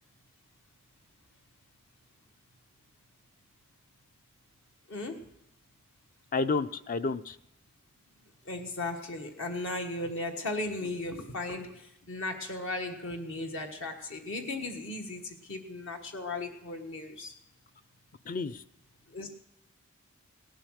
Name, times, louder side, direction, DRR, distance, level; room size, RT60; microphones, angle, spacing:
voice 1, 4.9-5.3 8.4-17.3 19.1-19.3, left 2 dB, 60° left, 4 dB, 1.4 m, -36 dB
voice 2, 6.3-7.4 18.3-18.6, left 4 dB, 40° left, 13 dB, 0.5 m, -30 dB
17.5 x 11.5 x 6.3 m, 0.89 s
head